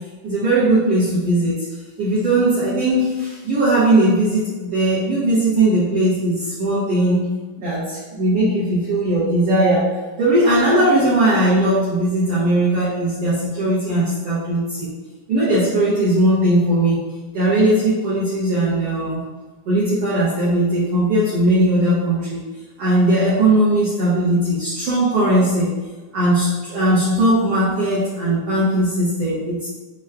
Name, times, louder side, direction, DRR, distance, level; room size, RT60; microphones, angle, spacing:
voice 1, 0.2-1.6 2.0-7.3 7.6-9.8 10.2-14.9 15.3-17.0 17.3-19.2 19.6-22.4 22.8-25.7 26.1-29.7, right 1 dB, 85° right, -10 dB, 1.3 m, -18 dB
6.1 x 2.2 x 2.4 m, 1.3 s
omnidirectional pair, 4.0 m